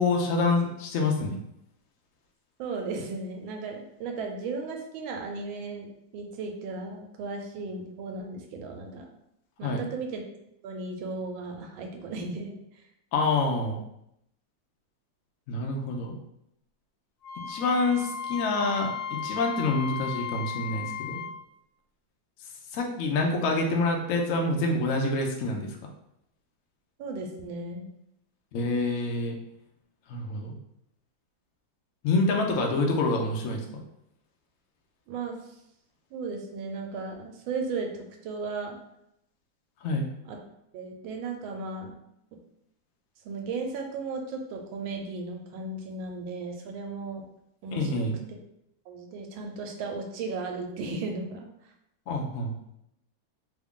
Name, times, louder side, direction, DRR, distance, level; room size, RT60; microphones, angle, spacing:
voice 1, 0.0-1.4 9.6-9.9 13.1-13.8 15.5-16.1 17.5-21.2 22.7-25.8 28.5-29.4 30.1-30.5 32.0-33.6 39.8-40.1 47.7-48.2 52.1-52.5, left 2 dB, 80° left, 1 dB, 0.7 m, -27 dB
voice 2, 2.6-5.9 6.1-9.1 9.6-10.2 10.6-12.6 27.0-27.9 35.1-35.4 36.1-38.8 40.3-40.4 40.7-41.9 43.2-47.2 47.6-48.1 48.9-51.5, right 3 dB, 85° right, 3 dB, 1.4 m, -35 dB
Wind instrument woodwind instrument, 17.2-21.3, left 6 dB, 65° left, 1.2 m, -35 dB
3.3 x 2.4 x 3.5 m, 0.80 s
omnidirectional pair, 2.1 m